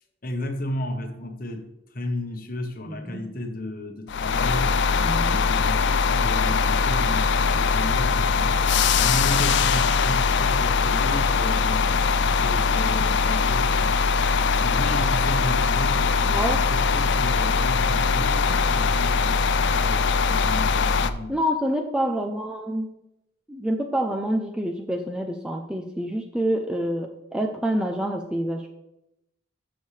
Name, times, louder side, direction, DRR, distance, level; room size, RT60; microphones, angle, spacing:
voice 1, 0.2-12.1 12.4-13.9 14.6-21.3, left 1 dB, 45° left, 5 dB, 1.1 m, -33 dB
voice 2, 2.9-3.2 4.9-5.4 16.2-16.6 21.3-22.9 23.5-28.7, equal, 5° right, 3 dB, 0.5 m, -27 dB
sound 1, 4.1-21.1, left 5 dB, 60° left, 0.4 m, -21 dB
12.0 x 6.4 x 3.3 m, 0.87 s
head